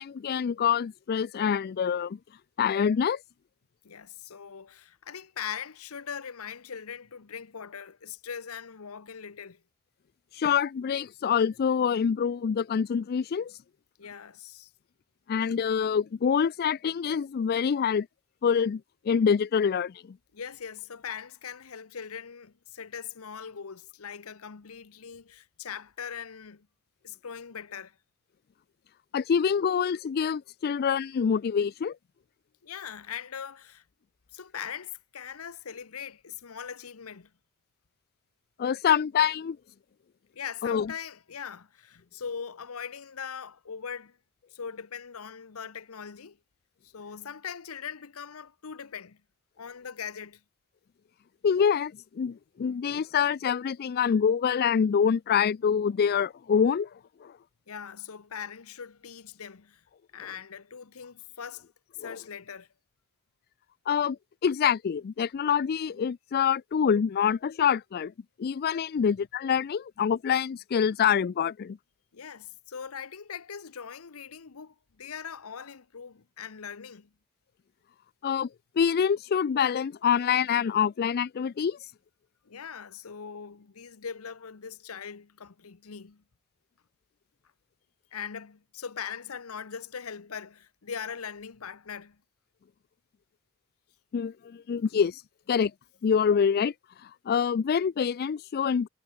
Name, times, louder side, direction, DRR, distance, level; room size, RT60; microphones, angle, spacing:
voice 1, 0.0-2.2 2.6-3.2 10.3-13.5 15.3-18.1 18.4-18.8 19.1-20.0 29.1-32.0 38.6-39.6 40.6-40.9 51.4-56.9 57.2-57.3 62.0-62.1 63.9-64.2 64.4-68.1 68.4-71.8 78.2-78.5 78.8-81.9 94.1-95.2 95.5-95.7 96.0-96.7 97.0-98.9, left 7 dB, 45° left, 0.3 m, -26 dB
voice 2, 3.8-9.6 14.0-14.7 20.3-26.7 27.0-28.0 32.6-33.8 34.3-37.3 40.3-44.2 44.5-46.4 46.8-49.2 49.6-50.4 57.7-59.8 60.1-61.7 62.0-62.7 72.1-77.1 82.4-86.2 88.1-92.2, left 7 dB, 80° left, 0.8 m, -41 dB
head